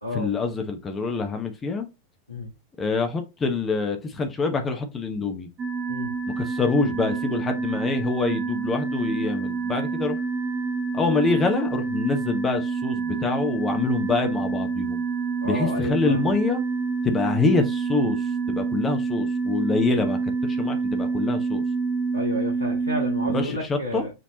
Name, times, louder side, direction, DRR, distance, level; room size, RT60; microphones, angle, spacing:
voice 1, 0.1-1.9 2.8-5.5 6.4-10.2 10.9-15.0 15.4-16.6 17.0-21.6 23.3-24.1, left 4 dB, 20° left, 0.9 m, -26 dB
sound 1, 5.6-23.5, right 4 dB, 25° right, 0.7 m, -27 dB
voice 2, 15.4-16.4 22.1-24.1, left 1 dB, 85° left, 1.3 m, -31 dB
5.0 x 3.4 x 2.9 m
figure-of-eight pair, 90°, 0 cm